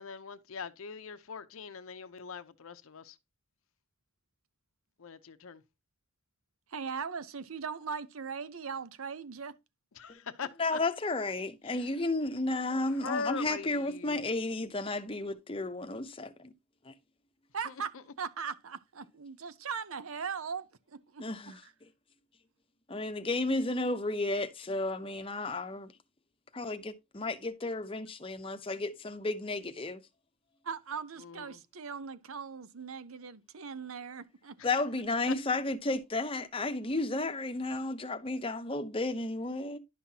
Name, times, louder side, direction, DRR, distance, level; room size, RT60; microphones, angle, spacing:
voice 1, 0.0-3.2 5.0-5.6 10.0-10.8 11.7-11.9 12.8-14.2 17.6-17.7 31.2-31.6, left 5 dB, 75° left, 0.7 m, -41 dB
voice 2, 6.7-9.6 17.5-21.7 30.6-34.6, right 6 dB, 75° right, 0.7 m, -39 dB
voice 3, 10.6-16.5 16.8-16.9 21.2-21.6 22.9-25.9 26.5-30.0 34.6-39.8, left 2 dB, 25° left, 0.7 m, -33 dB
11.0 x 5.7 x 2.8 m
head